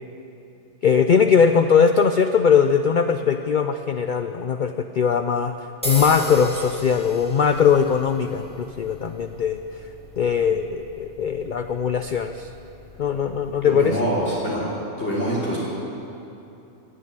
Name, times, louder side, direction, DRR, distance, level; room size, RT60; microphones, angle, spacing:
voice 1, 0.8-5.5 5.8-9.6 10.2-12.5 13.0-14.0, left 6 dB, 75° left, 8 dB, 0.4 m, -20 dB
sound 1, 5.8-13.9, left 1 dB, 5° left, 1.8 m, -37 dB
voice 2, 13.6-14.6 15.0-15.6, equal, 55° left, -8 dB, 3.5 m, -25 dB
18.0 x 7.6 x 8.9 m, 2.8 s
omnidirectional pair, 1.4 m